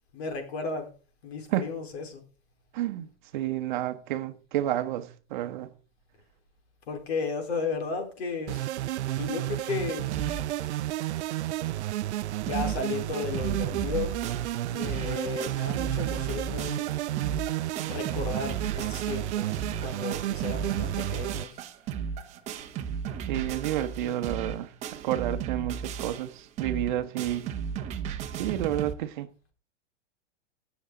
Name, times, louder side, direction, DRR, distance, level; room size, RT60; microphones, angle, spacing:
voice 1, 0.1-0.9 1.2-2.2 6.9-8.7 9.2-10.1 12.4-14.3 14.7-16.9 17.8-21.6 23.8-24.1, left 4 dB, 65° left, 4.1 m, -34 dB
voice 2, 2.7-3.1 3.3-5.7 23.3-24.7 25.0-26.3 26.6-27.5 28.3-29.3, right 13 dB, 45° right, 1.0 m, -30 dB
sound 1, 8.5-21.4, right 14 dB, 75° right, 0.6 m, -31 dB
sound 2, 10.1-10.6 11.0-11.1 11.3-11.4 11.9-12.0 12.2-12.8 13.1-28.9, right 7 dB, 20° right, 0.9 m, -35 dB
17.5 x 7.1 x 3.8 m
hypercardioid pair, 160°, 35 cm